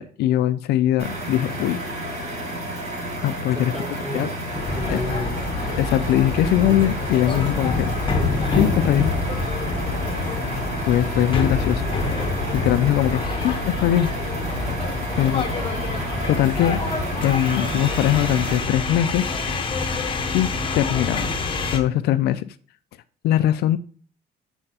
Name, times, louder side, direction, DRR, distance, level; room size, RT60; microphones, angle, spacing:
voice 1, 0.0-1.8 3.2-3.7 4.1-4.3 4.9-5.0 5.8-7.9 8.6-9.1 10.9-11.8 12.5-14.1 15.2-15.5 16.3-16.8 17.2-19.7 20.3-21.3 21.7-22.5 23.2-23.8, left 12 dB, 75° left, 14 dB, 0.4 m, -21 dB
sound 1, 1.0-18.6, right 1 dB, 40° right, 2.5 m, -31 dB
voice 2, 3.5-5.3 13.4-13.5, left 1 dB, ahead, 0 dB, 2.4 m, -32 dB
sound 2, 4.5-21.8, left 3 dB, 30° left, 1.0 m, -26 dB
8.6 x 4.4 x 2.8 m, 0.43 s
cardioid pair, 110°, 17 cm